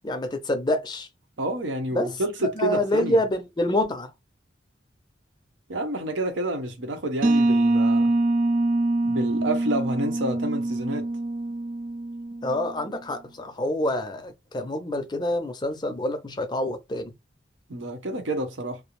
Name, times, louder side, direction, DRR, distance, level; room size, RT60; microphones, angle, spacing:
voice 1, 0.0-1.1 1.9-2.1 2.4-4.1 12.4-17.1, left 1 dB, 25° left, 0.4 m, -27 dB
voice 2, 1.4-3.2 5.7-8.1 9.0-11.1 17.7-18.8, right 1 dB, 90° right, 0.8 m, -29 dB
sound 1, 7.2-12.8, right 2 dB, 45° right, 0.4 m, -24 dB
2.4 x 2.0 x 2.9 m
head